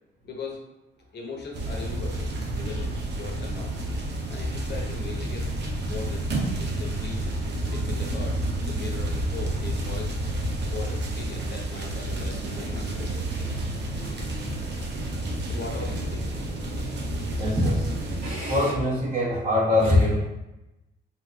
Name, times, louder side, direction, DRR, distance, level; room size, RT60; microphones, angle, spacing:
voice 1, 0.2-0.6 1.1-3.7 4.3-5.5 5.8-7.3 7.7-10.2 10.7-13.5 15.5-16.3, left 4 dB, 60° left, 1 dB, 1.0 m, -39 dB
sound 1, 1.5-18.3, right 1 dB, 60° right, 0.8 m, -30 dB
voice 2, 17.0-20.2, left 1 dB, 35° right, -10 dB, 1.4 m, -23 dB
4.0 x 2.6 x 3.3 m, 0.96 s
cardioid pair, 90°, 20 cm